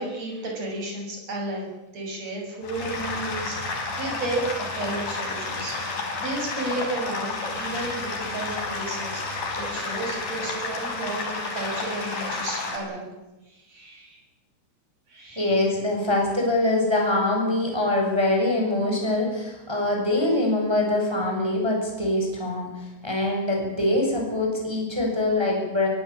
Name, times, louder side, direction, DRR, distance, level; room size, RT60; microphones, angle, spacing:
voice 1, 0.0-5.9 6.2-13.1 13.5-14.2 15.1-15.6, right 2 dB, 30° right, 0 dB, 7.6 m, -33 dB
sound 1, 2.6-12.8, left 3 dB, 40° left, 5.5 m, -31 dB
voice 2, 15.3-25.9, left 2 dB, 5° right, 0 dB, 6.4 m, -24 dB
23.5 x 16.5 x 8.7 m, 1.0 s
omnidirectional pair, 6.0 m